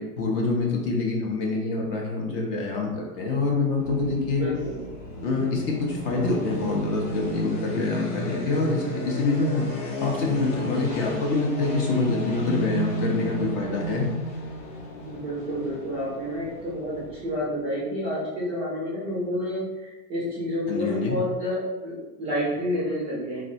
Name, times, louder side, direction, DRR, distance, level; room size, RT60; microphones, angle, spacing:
voice 1, 0.0-4.5 5.2-9.7 10.0-14.1 20.7-21.2, left 3 dB, 35° left, -1 dB, 0.6 m, -26 dB
sound 1, 3.7-17.6, equal, 80° left, 0.9 m, -33 dB
voice 2, 4.4-4.7 15.0-23.4, equal, 15° right, -9 dB, 0.4 m, -29 dB
3.2 x 2.0 x 2.6 m, 1.1 s
hypercardioid pair, 130°, 47 cm